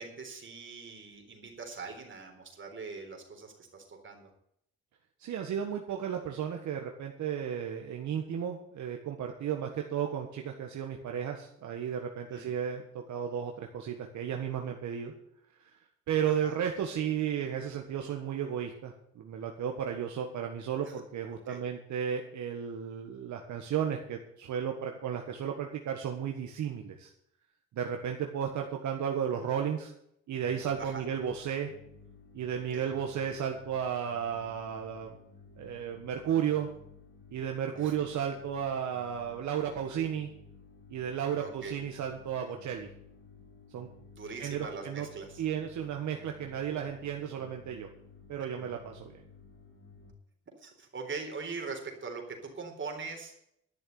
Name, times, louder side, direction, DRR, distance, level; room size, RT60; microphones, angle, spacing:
voice 1, 0.0-4.3 12.3-12.5 16.3-16.6 20.8-21.0 21.5-21.6 30.8-31.0 32.7-32.9 37.8-38.0 41.4-41.8 44.1-45.4 50.6-53.3, right 4 dB, 40° right, 3 dB, 3.8 m, -42 dB
voice 2, 5.2-15.1 16.1-27.1 27.7-29.9 30.3-31.7 32.3-35.2 35.6-36.7 37.3-40.3 40.9-42.9 43.7-43.9 44.4-45.1 45.4-47.9 48.3-49.2, right 8 dB, 70° right, 3 dB, 1.6 m, -34 dB
sound 1, 30.4-50.1, left 4 dB, 50° left, 3.8 m, -55 dB
11.5 x 6.7 x 9.2 m, 0.73 s
cardioid pair, 90°, 30 cm